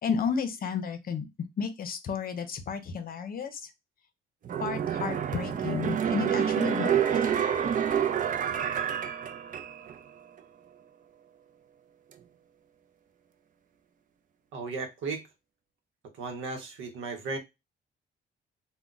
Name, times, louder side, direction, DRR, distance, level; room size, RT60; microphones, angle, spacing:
voice 1, 0.0-1.3 1.6-3.7 4.6-7.0, left 6 dB, 50° left, 0.6 m, -32 dB
sound 1, 4.4-10.0 10.4-10.5, right 8 dB, 40° right, 0.4 m, -28 dB
voice 2, 14.5-15.3 16.1-17.4, right 4 dB, 85° right, 0.8 m, -35 dB
2.2 x 2.2 x 3.8 m
cardioid pair, 90°, 20 cm